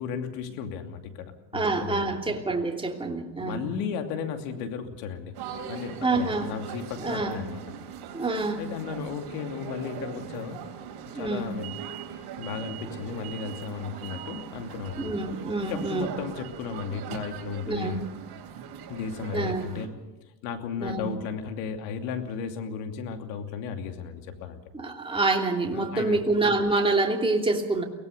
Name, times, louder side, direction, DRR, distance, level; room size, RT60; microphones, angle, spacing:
voice 1, 0.0-2.4 3.4-5.4 5.7-7.6 8.6-10.6 11.1-11.7 12.4-15.1 15.6-18.0 18.9-19.9 20.4-24.6 25.7-26.2, left 6 dB, 80° left, 5 dB, 2.8 m, -35 dB
voice 2, 1.5-3.6 6.0-6.5 7.0-7.5 8.1-8.6 11.1-11.6 15.0-16.1 17.7-18.0 19.3-19.7 20.8-21.1 24.7-27.8, right 3 dB, 10° right, 1 dB, 3.1 m, -27 dB
sound 1, 5.3-19.9, right 8 dB, 55° right, 3.9 m, -40 dB
23.5 x 18.0 x 6.7 m, 1.1 s
supercardioid pair, 95°, 47 cm